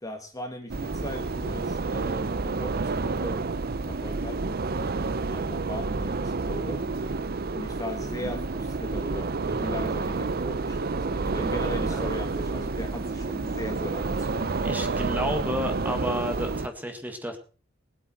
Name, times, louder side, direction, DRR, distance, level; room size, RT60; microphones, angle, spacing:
voice 1, 0.0-3.5 3.9-6.8 7.5-14.6, left 1 dB, 15° left, 4 dB, 1.6 m, -38 dB
sound 1, 0.7-16.7, right 3 dB, 50° right, 0.7 m, -29 dB
voice 2, 14.6-17.4, equal, 10° right, 6 dB, 1.8 m, -31 dB
20.5 x 8.2 x 4.5 m, 0.36 s
head